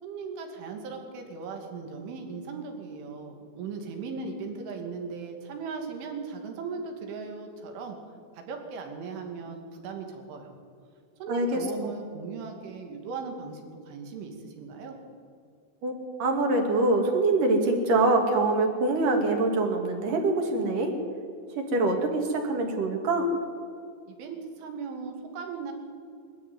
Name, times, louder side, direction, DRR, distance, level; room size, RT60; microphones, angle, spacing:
voice 1, 0.0-8.0 8.3-10.5 11.2-15.0 24.1-25.7, right 4 dB, 85° right, 3 dB, 4.9 m, -38 dB
voice 2, 11.3-11.9 15.8-15.9 16.2-20.9 21.5-23.3, right 2 dB, 50° right, 3 dB, 3.6 m, -24 dB
23.0 x 13.0 x 9.5 m, 2.3 s
omnidirectional pair, 5.4 m